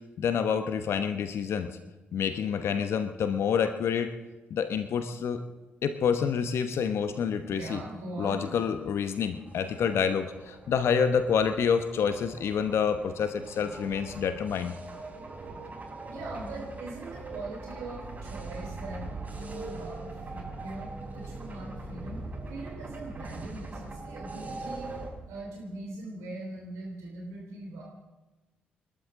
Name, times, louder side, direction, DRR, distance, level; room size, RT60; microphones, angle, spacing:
voice 1, 0.2-1.7 2.1-4.1 4.5-5.4 5.8-7.8 8.2-14.7, left 7 dB, 60° left, 9 dB, 1.0 m, -28 dB
voice 2, 7.6-8.4 16.1-22.2 22.5-25.0 25.3-27.8, right 2 dB, 70° right, -1 dB, 3.2 m, -41 dB
sound 1, 9.0-25.1, right 2 dB, 35° right, 6.9 m, -41 dB
28.0 x 12.5 x 3.7 m, 1.1 s
figure-of-eight pair, 40°, 5 cm